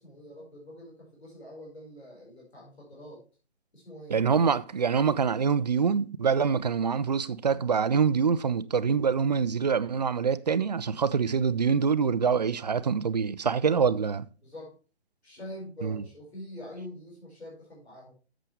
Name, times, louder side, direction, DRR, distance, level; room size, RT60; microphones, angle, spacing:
voice 1, 0.0-3.2 3.7-4.2 13.8-14.0 14.4-14.7 15.2-18.1, left 1 dB, 70° left, 5.1 m, -45 dB
voice 2, 4.1-14.2 15.8-16.0, right 6 dB, 40° right, 0.5 m, -25 dB
11.0 x 7.5 x 3.3 m
figure-of-eight pair, 140°, 33 cm